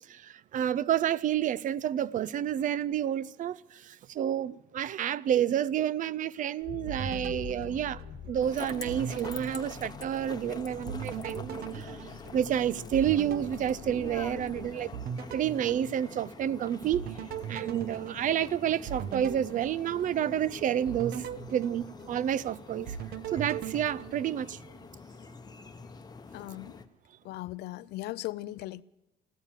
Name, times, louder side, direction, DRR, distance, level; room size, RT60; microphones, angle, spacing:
voice 1, 0.1-14.9 15.3-17.1 17.5-23.0 23.3-24.6, right 10 dB, 50° right, 0.4 m, -30 dB
sound 1, 6.6-14.8, left 9 dB, 55° left, 1.2 m, -47 dB
sound 2, 6.9-8.5 8.9-10.5 10.9-14.5 14.9-16.5 16.9-20.4 20.9-22.5 22.9-24.8, right 8 dB, 70° right, 0.9 m, -40 dB
sound 3, 8.4-26.9, left 4 dB, 25° left, 0.9 m, -46 dB
voice 2, 26.3-26.8 27.2-28.8, left 16 dB, 75° left, 0.5 m, -38 dB
14.5 x 13.5 x 7.3 m
cardioid pair, 110°, 17 cm